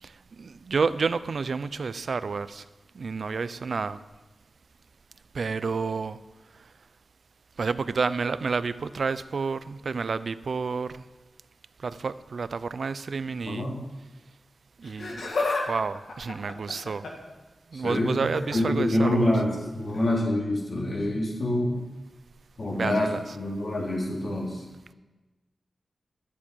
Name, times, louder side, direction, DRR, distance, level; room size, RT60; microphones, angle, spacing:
voice 1, 0.0-2.6 2.9-4.0 5.3-6.2 7.6-11.0 11.8-13.7 14.8-15.2 15.7-17.0 17.7-19.3 22.7-23.2, right 4 dB, 65° right, 14 dB, 0.5 m, -30 dB
voice 2, 13.5-13.8 17.7-18.2 18.5-21.8 22.6-24.6, left 1 dB, 50° left, -2 dB, 3.5 m, -26 dB
Laughter, 14.8-15.7 15.9-17.3 18.2-18.6 19.9-20.1 21.0-21.1, left 3 dB, 80° left, 2.1 m, -31 dB
12.0 x 7.5 x 8.6 m, 1.2 s
wide cardioid pair, 105°, 0 cm